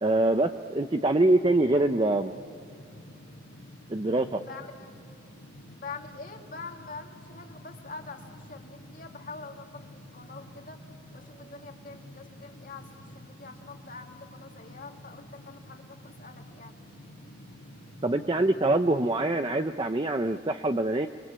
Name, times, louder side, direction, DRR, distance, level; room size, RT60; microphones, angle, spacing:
voice 1, 0.0-2.3 3.9-4.4 18.0-21.1, right 2 dB, 25° right, 7 dB, 0.7 m, -24 dB
Take off, 1.4-19.1, equal, 75° left, 4.1 m, -49 dB
voice 2, 5.7-10.8 11.1-16.8, left 4 dB, 50° left, 3 dB, 2.5 m, -45 dB
27.5 x 24.0 x 8.6 m, 2.4 s
head